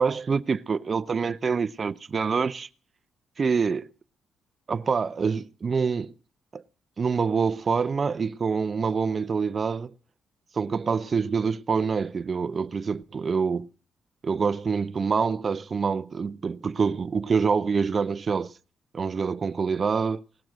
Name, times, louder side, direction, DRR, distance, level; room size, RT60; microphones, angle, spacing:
voice 1, 0.0-2.7 3.4-3.9 4.7-6.1 6.5-6.6 7.0-9.9 10.5-13.7 14.2-18.5 18.9-20.2, right 5 dB, 40° right, 0.6 m, -26 dB
18.5 x 7.7 x 7.4 m
cardioid pair, 90°, 0 cm